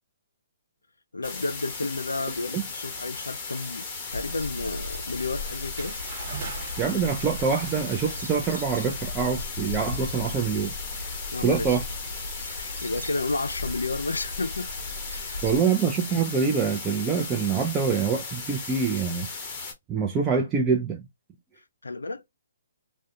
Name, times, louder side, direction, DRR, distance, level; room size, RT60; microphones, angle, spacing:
voice 1, 1.1-3.9 4.1-6.0 11.3-11.8 12.4-14.7 15.1-15.4 21.8-22.3, left 3 dB, 85° left, 0.3 m, -31 dB
sound 1, 1.2-19.7, left 4 dB, 25° left, 0.9 m, -37 dB
sound 2, 4.1-15.6, left 2 dB, 90° right, 0.8 m, -38 dB
Bathtub (filling or washing) / Splash splatter, 5.5-11.3, right 5 dB, 45° right, 1.0 m, -44 dB
voice 2, 6.8-10.7 11.4-11.8 15.4-19.3 19.9-21.0, right 6 dB, 20° right, 0.4 m, -25 dB
2.3 x 2.1 x 2.6 m
figure-of-eight pair, 135°, 0 cm